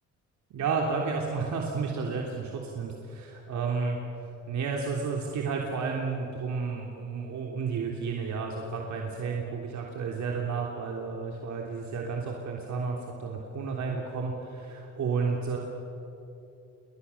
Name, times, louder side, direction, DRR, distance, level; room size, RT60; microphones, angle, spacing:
voice 1, 0.5-4.0 4.5-15.6, right 5 dB, 70° right, 0 dB, 3.3 m, -32 dB
29.5 x 24.0 x 7.2 m, 2.9 s
cardioid pair, 90°, 30 cm